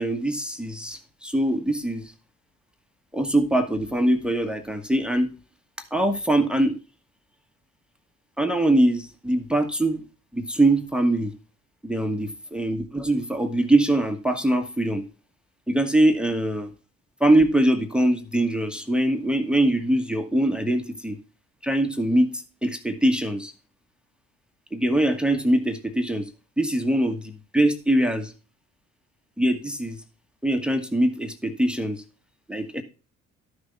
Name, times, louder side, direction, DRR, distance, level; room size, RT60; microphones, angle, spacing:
voice 1, 0.0-2.1 3.1-5.3 5.9-6.8 8.4-10.0 10.3-11.3 11.8-15.0 15.7-16.7 17.2-21.2 21.6-23.5 24.7-26.3 26.6-28.3 29.4-30.0 30.4-32.0 32.5-32.8, right 1 dB, ahead, 6 dB, 1.4 m, -23 dB
13.0 x 6.5 x 3.5 m, 0.34 s
figure-of-eight pair, 45°, 41 cm